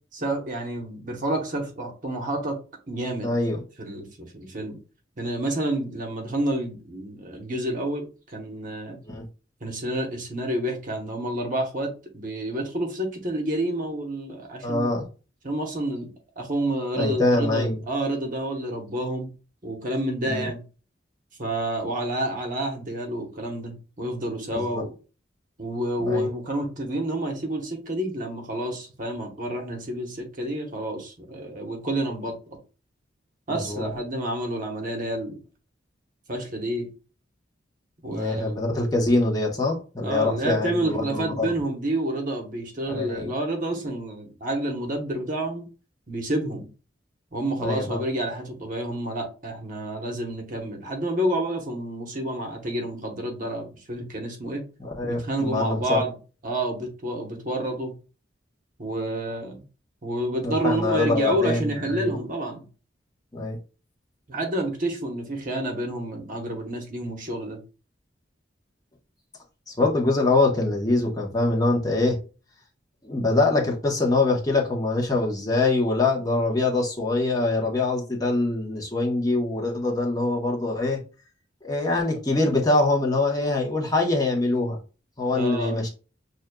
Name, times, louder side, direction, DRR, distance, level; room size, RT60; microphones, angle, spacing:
voice 1, 0.1-2.6 2.9-3.3 3.8-4.8 5.2-9.0 9.6-14.9 15.4-19.3 19.6-20.6 21.4-24.9 25.6-32.6 33.5-35.4 36.3-36.9 38.0-38.4 40.0-45.7 46.1-46.7 47.3-54.6 55.0-56.1 56.4-57.9 58.8-59.6 60.0-62.7 64.3-67.6 85.3-85.8, right 1 dB, 45° right, 1.0 m, -29 dB
voice 2, 3.2-3.6 9.0-9.2 14.6-15.1 17.0-17.8 20.2-20.5 24.5-24.8 26.0-26.3 33.5-33.9 38.1-41.5 42.9-43.3 47.6-48.0 54.8-56.0 60.4-62.1 63.3-63.6 69.7-72.2 73.0-81.0 81.6-84.8 85.2-85.9, left 2 dB, 20° left, 1.0 m, -24 dB
6.2 x 2.5 x 2.3 m
head